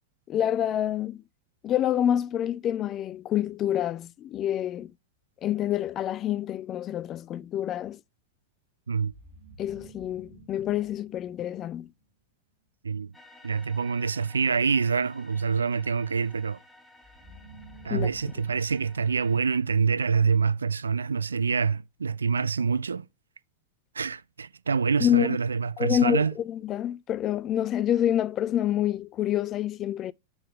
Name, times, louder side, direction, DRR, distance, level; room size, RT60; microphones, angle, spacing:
voice 1, 0.3-1.2 1.6-4.9 5.4-8.0 9.6-11.9 17.9-18.1 25.0-25.4 25.8-30.1, left 11 dB, 30° left, 0.3 m, -27 dB
sound 1, 9.1-12.1 17.0-20.2, right 1 dB, 45° right, 2.1 m, -52 dB
sound 2, 13.1-19.4, left 2 dB, 5° left, 1.0 m, -55 dB
voice 2, 13.4-16.6 17.8-23.0 24.0-26.3, right 5 dB, 75° right, 0.3 m, -26 dB
5.5 x 3.4 x 5.6 m
figure-of-eight pair, 90°, 0 cm